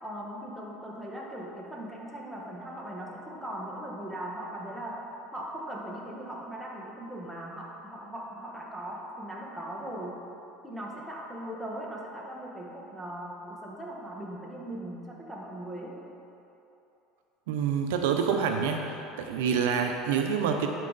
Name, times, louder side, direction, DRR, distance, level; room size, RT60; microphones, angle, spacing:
voice 1, 0.0-5.1 5.3-10.2 10.6-16.1, right 1 dB, 5° right, -3 dB, 1.2 m, -39 dB
voice 2, 17.5-18.8 19.2-20.7, right 7 dB, 90° right, 4 dB, 0.6 m, -27 dB
11.0 x 4.7 x 4.0 m, 2.9 s
supercardioid pair, 125°, 0 cm